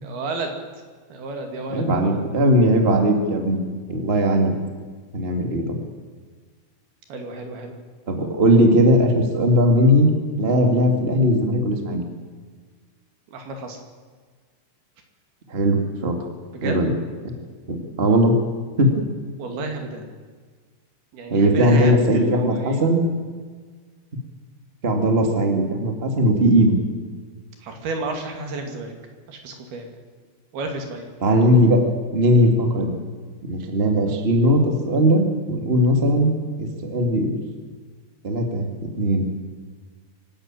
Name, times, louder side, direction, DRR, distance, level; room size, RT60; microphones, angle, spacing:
voice 1, 0.0-0.5 1.1-2.2 7.1-7.8 13.3-13.8 16.5-16.8 19.4-20.1 21.1-22.9 27.6-28.9 29.3-30.0 30.5-31.2, right 2 dB, 55° right, 4 dB, 4.0 m, -31 dB
voice 2, 1.7-3.6 3.9-4.5 5.1-5.8 8.1-10.1 10.4-12.0 15.5-16.2 16.6-16.9 17.7-18.3 18.8-19.0 21.3-23.0 24.8-26.8 31.2-31.8 32.1-33.0 33.4-36.3 36.6-37.4 38.2-38.7 39.0-39.4, equal, 40° right, 4 dB, 0.8 m, -19 dB
25.0 x 12.5 x 9.0 m, 1.5 s
omnidirectional pair, 5.5 m